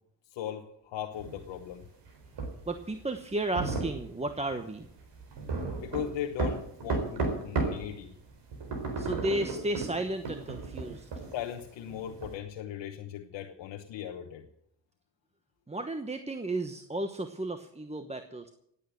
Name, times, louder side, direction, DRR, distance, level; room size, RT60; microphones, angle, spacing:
voice 1, 0.3-1.9 5.8-8.1 11.3-14.5, left 10 dB, 80° left, 3 dB, 1.2 m, -38 dB
sound 1, 1.2-7.9 8.2-12.3, right 3 dB, 70° right, 4.2 m, -34 dB
voice 2, 2.7-4.9 9.0-11.1 15.7-18.5, right 1 dB, 15° right, 7 dB, 1.1 m, -33 dB
16.5 x 8.6 x 7.7 m, 0.73 s
cardioid pair, 80°, 43 cm